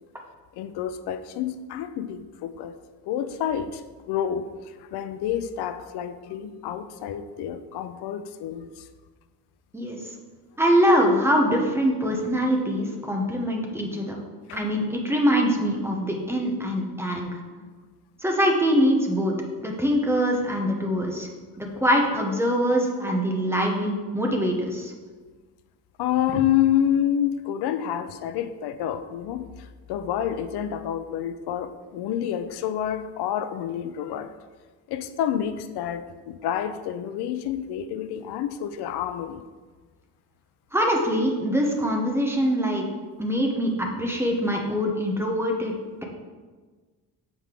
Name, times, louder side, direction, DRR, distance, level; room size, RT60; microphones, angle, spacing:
voice 1, 0.6-2.8 3.1-3.8 4.1-4.5 4.9-8.7 14.5-14.6 26.0-29.5 29.9-34.3 34.9-39.4, left 10 dB, 85° left, 11 dB, 0.6 m, -28 dB
voice 2, 10.6-14.2 14.5-17.4 18.2-19.3 19.6-21.3 21.6-24.9 40.7-42.9 43.2-45.7, equal, 5° right, 0 dB, 0.6 m, -23 dB
7.3 x 4.8 x 3.7 m, 1.4 s
cardioid pair, 175°, 38 cm